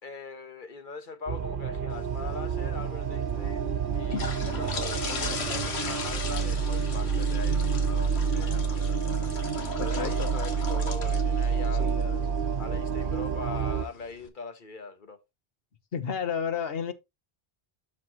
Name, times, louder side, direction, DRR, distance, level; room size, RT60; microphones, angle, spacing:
voice 1, 0.0-9.0 9.7-12.2 12.6-15.2, left 5 dB, 55° left, 1.2 m, -41 dB
sound 1, 1.3-13.9, right 6 dB, 60° right, 0.9 m, -28 dB
sound 2, 1.9-14.3, left 4 dB, 90° left, 1.5 m, -39 dB
voice 2, 9.0-9.5 9.8-10.4 11.8-12.4 15.9-16.9, left 7 dB, 70° left, 1.3 m, -33 dB
12.5 x 4.2 x 2.9 m
omnidirectional pair, 1.1 m